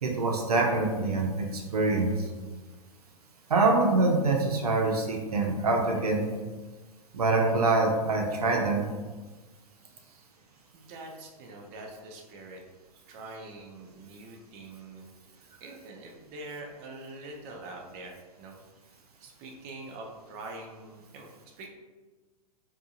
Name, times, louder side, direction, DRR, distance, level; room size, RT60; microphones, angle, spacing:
voice 1, 0.0-2.1 3.5-6.3 7.1-8.8, right 3 dB, 80° right, 1 dB, 0.6 m, -25 dB
voice 2, 9.8-10.3 10.7-12.6 13.1-15.1 15.6-18.6 19.2-21.3 21.6-21.7, right 2 dB, 35° right, 1 dB, 0.6 m, -44 dB
3.6 x 2.8 x 2.4 m, 1.3 s
figure-of-eight pair, 100°, 19 cm